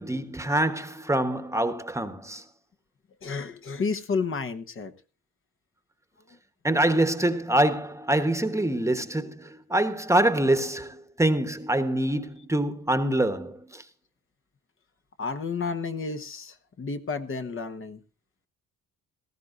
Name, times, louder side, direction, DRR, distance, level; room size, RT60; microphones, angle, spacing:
voice 1, 0.0-2.4 6.6-13.8, right 1 dB, 10° right, 1.2 m, -25 dB
voice 2, 3.2-4.9 15.2-18.0, left 4 dB, 45° left, 1.2 m, -31 dB
18.5 x 14.0 x 2.6 m
cardioid pair, 90°, 30 cm